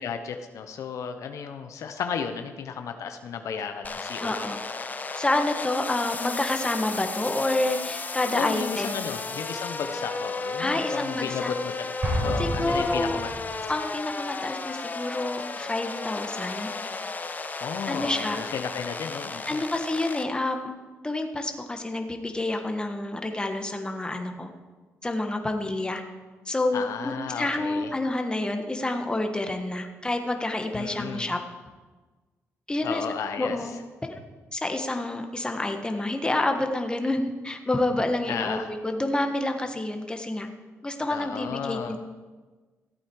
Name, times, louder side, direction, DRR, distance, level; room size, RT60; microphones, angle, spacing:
voice 1, 0.0-4.3 8.3-11.9 12.2-13.3 17.6-19.6 26.7-27.9 30.7-31.3 32.8-33.6 38.3-38.7 41.1-41.9, left 6 dB, 70° left, 7 dB, 0.8 m, -33 dB
sound 1, 3.8-20.2, left 3 dB, 30° left, 1.0 m, -34 dB
voice 2, 4.2-4.6 5.2-9.0 10.6-11.5 12.4-13.2 13.7-16.7 17.9-18.4 19.5-20.7 21.0-24.5 25.0-26.0 26.5-31.4 32.7-33.0 33.4-33.7 34.1-34.2 34.5-40.5 40.8-42.0, left 2 dB, 15° left, 4 dB, 1.5 m, -28 dB
Explosion, 12.0-13.8, right 1 dB, 50° right, 4.6 m, -30 dB
15.0 x 8.6 x 4.7 m, 1.3 s
cardioid pair, 75°, 5 cm